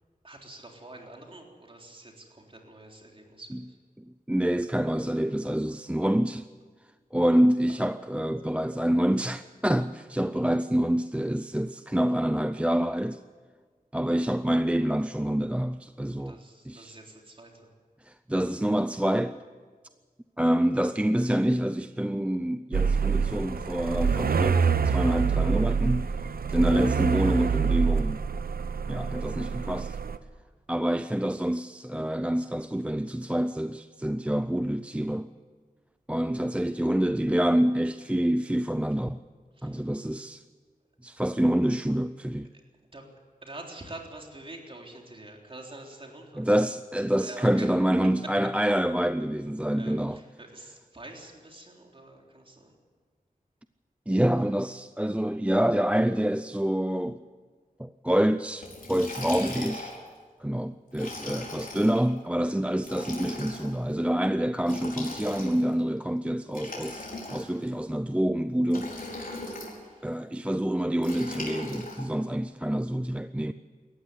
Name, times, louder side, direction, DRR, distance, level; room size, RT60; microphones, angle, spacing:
voice 1, 0.2-3.8 7.7-7.8 16.2-17.7 39.6-39.8 42.9-43.1 43.4-46.5 47.2-47.7 49.8-52.7 68.8-68.9 69.8-70.2, right 2 dB, 35° right, 3.7 m, -46 dB
voice 2, 4.0-6.5 7.1-13.2 13.9-16.3 16.7-17.0 18.1-19.3 20.4-26.1 26.5-28.2 28.9-30.0 30.7-35.3 36.1-39.2 39.6-40.4 41.0-42.5 46.4-50.2 54.1-57.2 57.8-59.9 60.4-68.9 70.0-73.5, right 1 dB, 10° right, 0.5 m, -27 dB
sound 1, 22.7-30.2, right 5 dB, 85° right, 0.7 m, -26 dB
Liquid, 58.6-60.1 60.9-62.0 62.8-63.7 64.6-65.7 66.5-67.7 68.7-69.8 71.0-72.0, left 2 dB, 70° left, 4.9 m, -38 dB
18.5 x 14.0 x 9.7 m
wide cardioid pair, 85°, 15 cm